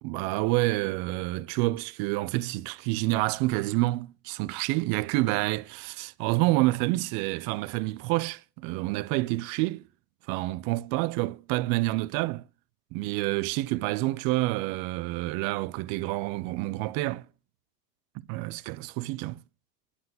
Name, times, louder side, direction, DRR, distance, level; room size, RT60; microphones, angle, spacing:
voice 1, 0.0-9.8 10.3-12.5 12.9-17.3 18.1-19.4, right 19 dB, 45° right, 0.6 m, -28 dB
9.8 x 5.6 x 7.0 m
hypercardioid pair, 90°, 47 cm